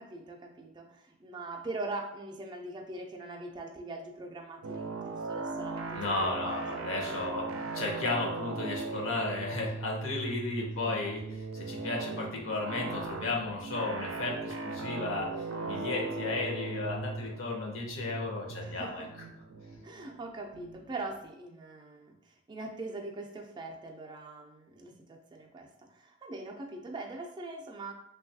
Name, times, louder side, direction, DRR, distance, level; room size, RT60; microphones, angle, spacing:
voice 1, 0.0-6.9 10.6-11.0 18.6-19.1 19.8-27.9, right 2 dB, 20° right, 1 dB, 0.3 m, -42 dB
sound 1, 4.6-21.2, right 3 dB, 90° right, 0.4 m, -38 dB
voice 2, 5.9-19.0, left 3 dB, 65° left, -1 dB, 0.6 m, -34 dB
3.1 x 2.2 x 2.6 m, 0.79 s
head